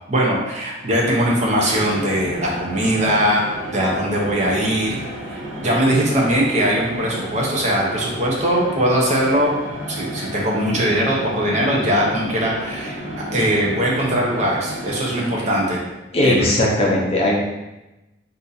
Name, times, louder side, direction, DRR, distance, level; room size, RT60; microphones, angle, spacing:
voice 1, 0.1-5.0 5.3-9.5 9.9-12.9 13.3-15.8 16.2-16.5, equal, 35° right, -3 dB, 0.6 m, -20 dB
sound 1, 0.7-16.0, right 1 dB, 60° right, 1.3 m, -32 dB
voice 2, 16.1-17.4, left 1 dB, 30° left, -3 dB, 0.5 m, -18 dB
2.6 x 2.5 x 4.0 m, 1.0 s
head